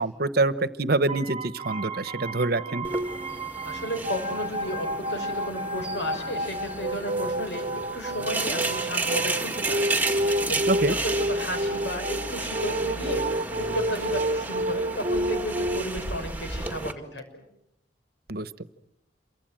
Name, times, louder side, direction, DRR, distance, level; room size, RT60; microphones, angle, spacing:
voice 1, 0.0-2.9 10.7-10.9 18.3-18.5, right 2 dB, 60° right, 15 dB, 1.0 m, -25 dB
sound 1, 1.1-15.8, right 1 dB, 35° right, 1.2 m, -30 dB
sound 2, 2.8-16.9, right 3 dB, 10° right, 2.0 m, -33 dB
voice 2, 3.6-9.9 10.1-17.4, equal, 85° left, 6 dB, 6.2 m, -34 dB
28.0 x 24.0 x 7.8 m, 0.79 s
head